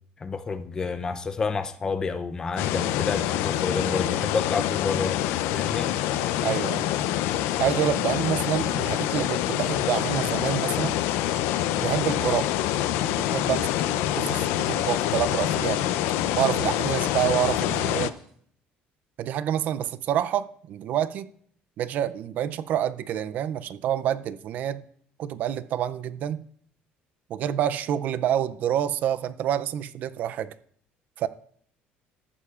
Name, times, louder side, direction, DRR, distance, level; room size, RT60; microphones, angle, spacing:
voice 1, 0.2-5.2 5.5-5.9, left 4 dB, 20° left, 0.5 m, -29 dB
sound 1, 2.6-18.1, left 12 dB, 85° left, 0.5 m, -26 dB
voice 2, 6.4-6.8 7.6-11.0 11.8-12.5 13.1-15.8 16.4-18.1 19.2-21.3 21.8-24.8 25.2-26.4 27.3-30.5 31.2-31.3, right 10 dB, 45° right, 0.4 m, -27 dB
sound 2, 12.2-14.5 14.8-17.8 18.1-18.3, right 1 dB, 5° right, 2.6 m, -47 dB
14.0 x 11.0 x 2.4 m
cardioid pair, 175°, 4 cm